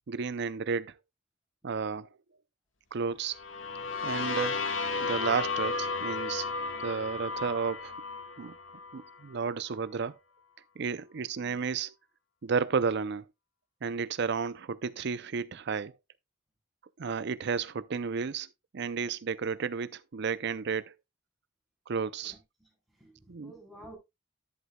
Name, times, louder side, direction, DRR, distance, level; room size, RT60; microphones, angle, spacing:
voice 1, 0.1-0.9 1.6-2.1 2.9-3.4 4.0-4.6 5.0-6.5 6.8-7.9 8.4-8.5 8.9-10.2 10.8-11.9 12.4-13.2 13.8-15.9 17.0-18.5 18.7-20.9 21.9-22.3 23.3-23.5, right 5 dB, 60° right, 0.5 m, -32 dB
sound 1, 3.3-9.2, left 4 dB, 80° left, 1.5 m, -34 dB
voice 2, 22.2-24.0, right 1 dB, ahead, 4.1 m, -52 dB
11.0 x 7.9 x 2.3 m
head